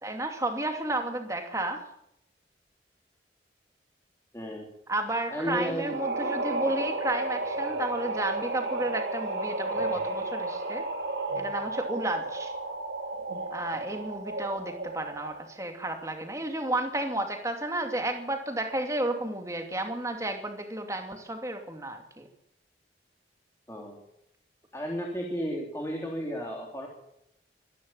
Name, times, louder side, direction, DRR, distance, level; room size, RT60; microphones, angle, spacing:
voice 1, 0.0-1.8 4.9-10.9 11.3-12.5 13.5-22.3, right 1 dB, 15° right, 4 dB, 2.6 m, -32 dB
voice 2, 4.3-4.7 5.3-5.9 23.7-24.0 24.7-26.9, equal, 15° left, 0 dB, 3.4 m, -33 dB
sound 1, 5.8-15.5, right 2 dB, 85° right, 3.8 m, -33 dB
25.5 x 11.5 x 9.0 m, 0.81 s
head